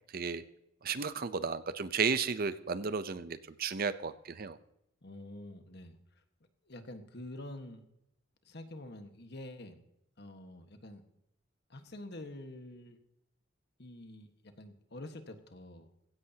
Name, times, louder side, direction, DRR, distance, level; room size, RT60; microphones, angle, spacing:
voice 1, 0.1-0.4 0.8-4.6, right 5 dB, 45° right, 13 dB, 0.6 m, -33 dB
voice 2, 5.0-6.0 6.6-7.8 8.4-9.8 10.2-11.0 11.7-13.0 13.8-16.1, left 1 dB, 55° left, 7 dB, 1.4 m, -47 dB
16.0 x 16.0 x 2.8 m, 0.81 s
head